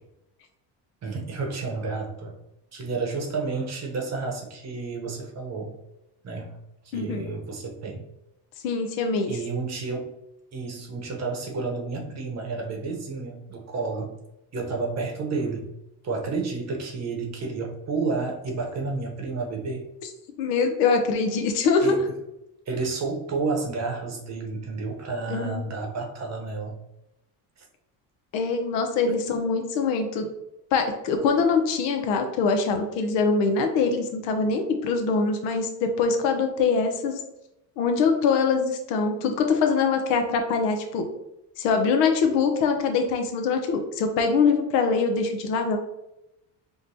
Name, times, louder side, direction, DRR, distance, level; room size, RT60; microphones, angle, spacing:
voice 1, 1.0-2.3 2.7-5.7 6.2-6.6 6.8-8.0 9.3-10.1 10.5-14.1 14.5-15.7 16.0-19.9 21.8-22.0 22.7-26.8 27.6-27.7 29.1-29.2, right 4 dB, 35° right, 2 dB, 0.8 m, -31 dB
voice 2, 6.9-7.2 8.6-9.4 20.4-21.9 25.3-25.6 28.3-30.3 30.7-37.2 37.8-41.1 41.6-45.8, left 4 dB, 90° left, 5 dB, 0.7 m, -23 dB
4.7 x 2.3 x 2.6 m, 0.88 s
cardioid pair, 115°, 43 cm